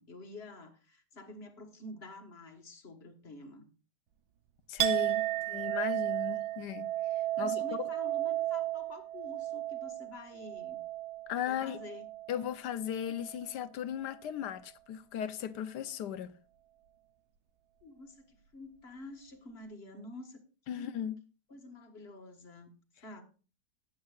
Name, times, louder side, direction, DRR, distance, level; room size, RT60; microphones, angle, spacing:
voice 1, 0.0-3.7 5.3-5.7 7.3-10.8 11.4-12.1 17.8-20.4 20.7-20.9 21.5-22.7 23.0-23.2, left 2 dB, 40° left, 1.7 m, -49 dB
voice 2, 4.7-6.9 7.4-7.9 11.3-11.8 12.3-16.3 20.7-21.2, left 9 dB, 80° left, 1.3 m, -37 dB
Chink clink, 4.8-12.5 12.8-13.5, right 14 dB, 70° right, 1.2 m, -34 dB
19.0 x 8.5 x 2.4 m
omnidirectional pair, 1.8 m